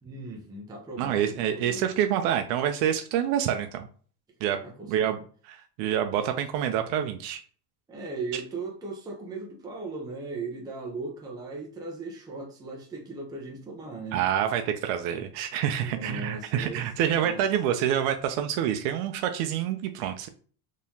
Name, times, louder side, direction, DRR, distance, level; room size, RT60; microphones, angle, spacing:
voice 1, 0.0-1.9 4.6-4.9 7.9-14.2 15.1-15.3 15.8-16.9 17.2-17.4, right 3 dB, 10° right, 0.6 m, -38 dB
voice 2, 1.0-3.9 4.4-4.6 4.9-7.4 8.3-8.4 14.1-20.3, right 10 dB, 70° right, 0.6 m, -27 dB
3.7 x 3.0 x 2.7 m
cardioid pair, 140°, 47 cm